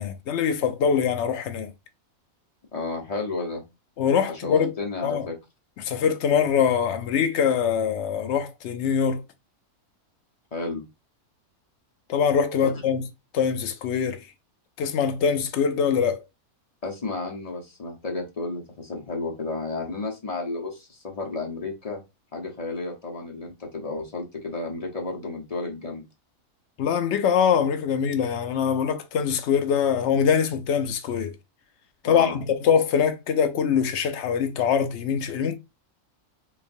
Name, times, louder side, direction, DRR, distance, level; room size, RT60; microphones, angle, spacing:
voice 1, 0.0-1.7 4.0-4.7 5.0-5.3 5.8-9.2 12.1-13.0 13.3-14.2 14.8-16.2 26.8-31.3 32.0-35.6, left 7 dB, 60° left, 0.8 m, -23 dB
voice 2, 2.7-3.6 4.3-5.3 10.5-10.9 12.6-12.7 16.8-22.0 22.3-26.0 32.0-32.4, left 3 dB, 30° left, 0.9 m, -32 dB
3.9 x 3.3 x 2.6 m
omnidirectional pair, 1.6 m